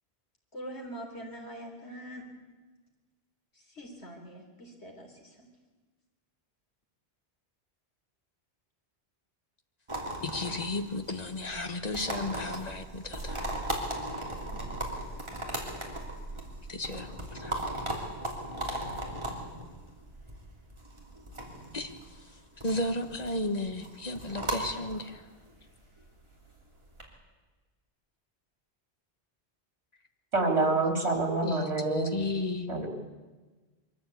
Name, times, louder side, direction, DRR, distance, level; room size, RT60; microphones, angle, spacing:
voice 1, 0.5-2.3 3.5-5.5 14.5-14.8 15.1-15.3, right 1 dB, 90° left, 1 dB, 4.2 m, -44 dB
sound 1, 9.9-27.0, right 1 dB, 25° right, 3.2 m, -38 dB
voice 2, 10.2-13.4 16.7-17.6 21.7-21.9 22.6-25.2 31.4-32.7, left 2 dB, 40° left, 7 dB, 1.5 m, -34 dB
voice 3, 30.3-32.1 32.7-32.9, right 3 dB, 85° right, 3 dB, 3.4 m, -27 dB
23.0 x 14.0 x 8.4 m, 1.3 s
omnidirectional pair, 1.1 m